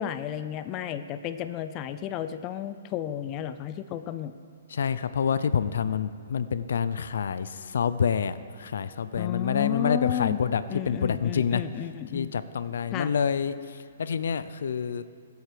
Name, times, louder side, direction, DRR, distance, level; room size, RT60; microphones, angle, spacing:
voice 1, 0.0-4.3 9.2-10.4 10.7-12.3 12.9-13.1, left 10 dB, 25° left, 11 dB, 0.5 m, -32 dB
voice 2, 4.7-11.6 12.1-13.5 14.0-15.0, left 7 dB, 75° left, 14 dB, 0.6 m, -27 dB
20.5 x 8.0 x 5.2 m, 2.3 s
hypercardioid pair, 160°, 0 cm